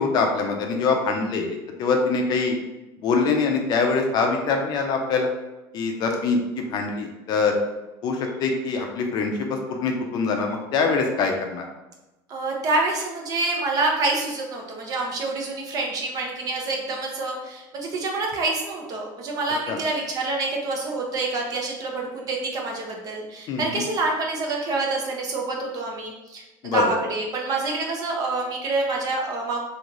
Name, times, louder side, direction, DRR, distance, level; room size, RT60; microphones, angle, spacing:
voice 1, 0.0-2.5 3.0-5.3 5.7-7.5 8.0-11.7 19.7-19.8 23.5-23.8 26.6-26.9, left 4 dB, 40° left, 3 dB, 0.6 m, -24 dB
voice 2, 12.3-26.4 26.7-29.6, right 3 dB, 35° right, 0 dB, 0.7 m, -27 dB
3.1 x 2.9 x 3.8 m, 1.0 s
cardioid pair, 150°, 10 cm